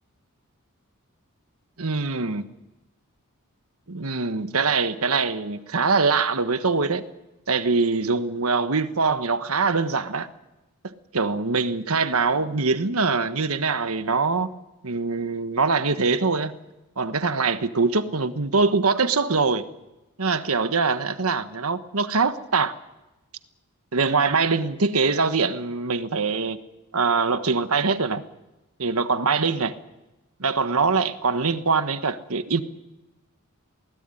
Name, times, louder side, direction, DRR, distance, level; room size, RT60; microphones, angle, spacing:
voice 1, 1.8-2.4 3.9-7.0 7.5-10.3 10.8-14.5 14.8-16.5 17.0-19.7 20.2-22.7 23.9-26.6 26.9-28.2 28.8-29.8 30.4-32.6, right 4 dB, 70° right, 1.4 m, -23 dB
21.0 x 18.0 x 9.9 m
head